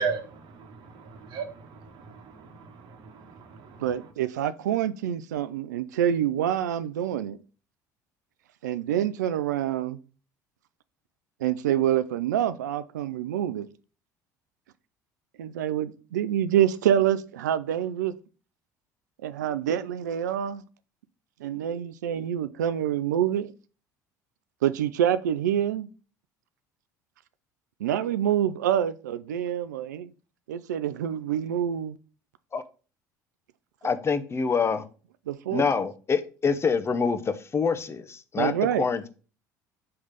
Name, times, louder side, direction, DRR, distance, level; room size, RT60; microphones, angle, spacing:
voice 1, 0.0-4.1, right 5 dB, 55° right, 1.2 m, -36 dB
voice 2, 3.8-7.4 8.6-10.0 11.4-13.7 15.4-18.1 19.2-20.6 21.4-23.5 24.6-25.9 27.8-30.1 30.5-32.0 35.3-35.6 38.4-38.8, right 10 dB, 80° right, 0.4 m, -26 dB
voice 3, 33.8-34.8 35.5-39.1, left 5 dB, 30° left, 0.8 m, -26 dB
5.7 x 3.2 x 5.1 m
hypercardioid pair, 65°, 9 cm